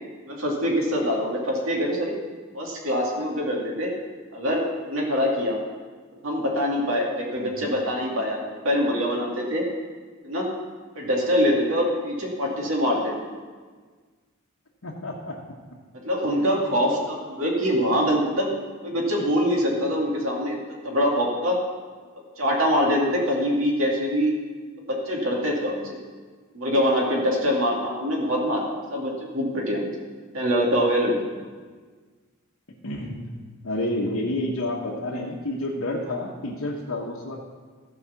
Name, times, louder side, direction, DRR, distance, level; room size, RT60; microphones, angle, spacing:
voice 1, 0.3-2.1 2.5-3.9 4.3-5.6 6.2-9.6 10.2-10.5 11.0-13.1 16.0-18.5 18.8-20.6 20.8-21.6 22.4-24.3 25.1-26.0 26.5-29.9 30.3-31.1, equal, 70° right, -2 dB, 2.4 m, -24 dB
voice 2, 7.4-7.7 14.8-15.4 16.4-16.5 32.8-33.3 33.6-37.4, left 1 dB, 75° left, -4 dB, 1.2 m, -30 dB
14.0 x 4.9 x 7.0 m, 1.5 s
head